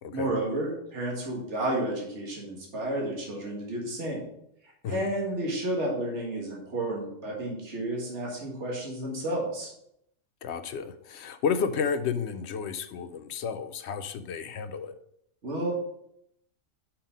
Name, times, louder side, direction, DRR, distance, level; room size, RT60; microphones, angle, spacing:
voice 1, 0.1-4.3 4.9-9.7 15.4-15.7, right 1 dB, 65° right, -2 dB, 2.0 m, -31 dB
voice 2, 10.4-14.9, left 6 dB, 65° left, 11 dB, 0.8 m, -31 dB
5.8 x 5.7 x 5.2 m, 0.75 s
omnidirectional pair, 1.3 m